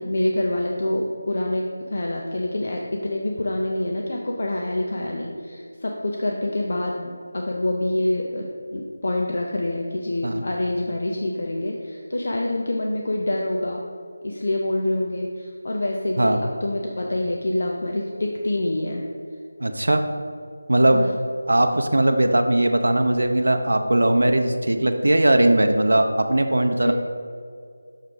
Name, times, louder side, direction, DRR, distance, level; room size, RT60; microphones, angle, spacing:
voice 1, 0.0-13.8 14.2-19.1 20.9-21.1 26.8-26.9, left 1 dB, 40° left, 0 dB, 0.5 m, -26 dB
voice 2, 19.6-20.0 20.7-21.1 21.5-26.9, right 1 dB, 80° right, 5 dB, 0.5 m, -19 dB
6.4 x 3.4 x 5.3 m, 2.2 s
figure-of-eight pair, 180°, 0 cm